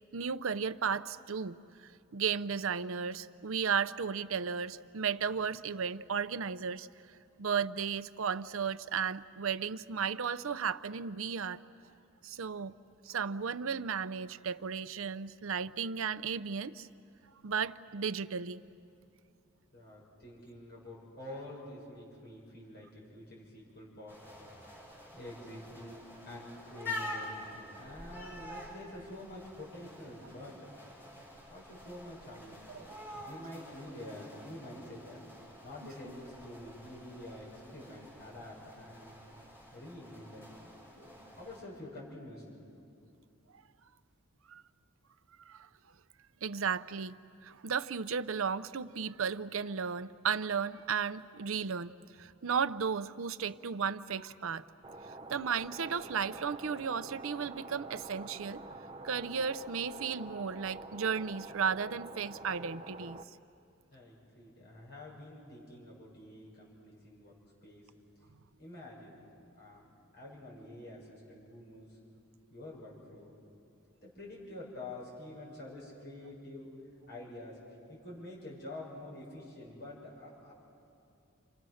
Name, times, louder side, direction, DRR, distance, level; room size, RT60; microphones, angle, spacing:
voice 1, 0.1-6.9 7.4-11.6 12.2-12.7 13.0-16.9 17.4-18.6 32.7-33.3 35.8-35.9 44.5-44.6 45.5-45.7 46.4-47.2 47.4-51.9 52.2-54.7 55.1-58.6 59.0-63.2, right 6 dB, 70° right, 13 dB, 0.6 m, -34 dB
voice 2, 19.7-24.2 25.1-30.6 31.5-32.6 33.2-35.2 35.6-39.2 39.7-40.4 40.9-42.6 63.9-67.3 67.6-67.9 68.6-69.2 69.6-72.0 72.5-73.3 74.0-76.7 77.1-77.6 77.9-80.5, left 1 dB, 50° left, -5 dB, 6.6 m, -47 dB
sound 1, 24.1-41.6, left 1 dB, 10° left, 7.7 m, -47 dB
sound 2, 54.8-63.2, right 2 dB, 25° right, 0.7 m, -47 dB
29.5 x 27.0 x 6.4 m, 2.6 s
head